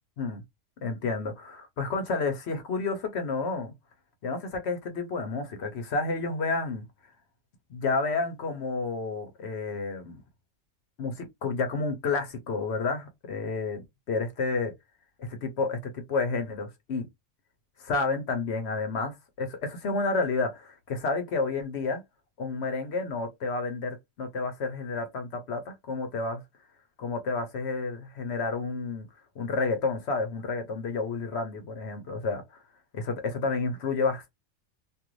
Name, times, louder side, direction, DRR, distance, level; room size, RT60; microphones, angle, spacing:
voice 1, 0.8-3.7 4.2-6.9 7.7-10.2 11.0-14.7 15.2-17.1 17.8-22.0 22.4-26.4 27.0-29.1 29.4-32.6 32.9-34.3, left 3 dB, 60° left, 0.9 m, -30 dB
2.6 x 2.5 x 3.0 m
omnidirectional pair, 1.3 m